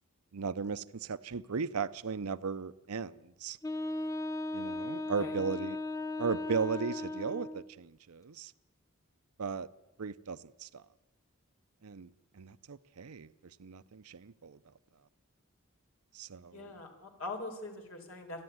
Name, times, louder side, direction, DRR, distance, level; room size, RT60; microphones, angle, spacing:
voice 1, 0.3-3.6 4.5-5.8 6.2-8.5 9.4-9.7 10.0-10.8 11.8-13.3 13.6-14.6 16.1-16.7, right 5 dB, 90° right, 0.6 m, -36 dB
Wind instrument woodwind instrument, 3.6-7.7, left 2 dB, 15° left, 0.7 m, -37 dB
voice 2, 5.0-5.4 16.5-18.4, left 2 dB, 70° left, 4.3 m, -43 dB
28.5 x 11.0 x 9.5 m
head